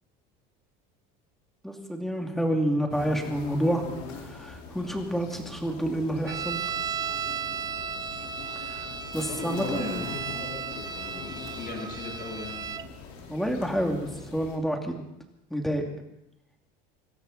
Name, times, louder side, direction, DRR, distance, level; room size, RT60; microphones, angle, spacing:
voice 1, 1.6-3.8 4.1-6.7 8.6-10.1 13.3-15.1 15.5-15.9, equal, ahead, 2 dB, 2.7 m, -29 dB
sound 1, 2.9-14.6, left 5 dB, 75° left, 4.4 m, -42 dB
sound 2, 6.3-12.9, right 6 dB, 20° right, 0.6 m, -35 dB
voice 2, 9.2-12.8 13.7-14.3, left 3 dB, 40° left, 0 dB, 7.2 m, -39 dB
25.5 x 13.0 x 4.2 m, 0.85 s
cardioid pair, 140°, 21 cm